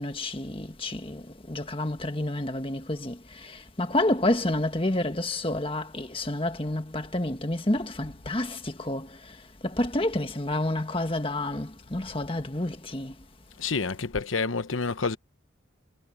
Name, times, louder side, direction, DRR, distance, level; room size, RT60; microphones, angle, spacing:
voice 1, 0.0-9.1 9.6-13.1, left 1 dB, 25° left, 1.6 m, -29 dB
voice 2, 13.6-15.2, left 4 dB, 85° left, 1.0 m, -28 dB
head